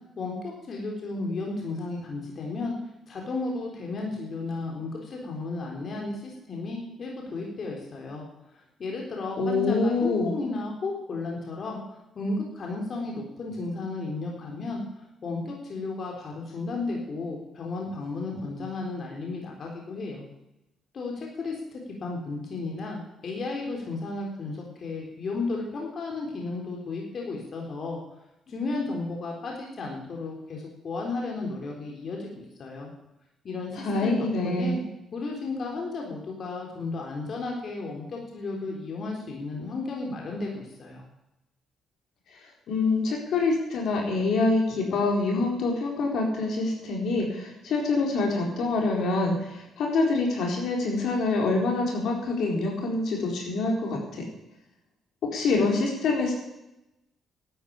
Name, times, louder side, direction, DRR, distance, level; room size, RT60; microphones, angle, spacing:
voice 1, 0.2-2.7 3.1-8.2 8.5-20.2 20.9-28.0 28.5-32.9 33.4-34.2 34.4-34.8 35.1-41.0, left 3 dB, 50° left, 0 dB, 3.8 m, -34 dB
voice 2, 9.4-10.4 33.7-34.8 42.7-54.2 55.2-56.3, left 3 dB, 75° left, 0 dB, 4.3 m, -26 dB
12.0 x 9.3 x 8.6 m, 0.90 s
cardioid pair, 90°, 0 cm